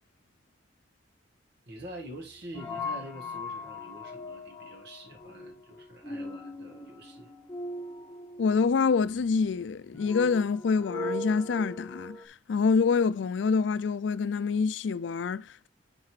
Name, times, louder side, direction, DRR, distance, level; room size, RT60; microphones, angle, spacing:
voice 1, 1.7-7.3, right 1 dB, 65° right, 1.8 m, -46 dB
sound 1, 1.8-12.2, left 2 dB, 10° left, 1.2 m, -40 dB
voice 2, 8.4-15.7, left 5 dB, 70° left, 0.4 m, -26 dB
9.5 x 5.3 x 3.2 m
head